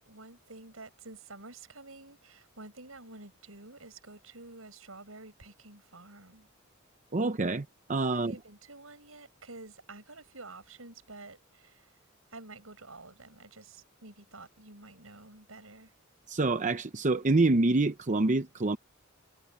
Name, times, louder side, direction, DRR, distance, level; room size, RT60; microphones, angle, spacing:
voice 1, 0.0-6.5 8.1-12.0 12.3-15.9, right 3 dB, 85° right, 7.2 m, -49 dB
voice 2, 7.1-8.3 16.3-18.8, right 2 dB, 35° right, 0.7 m, -26 dB
head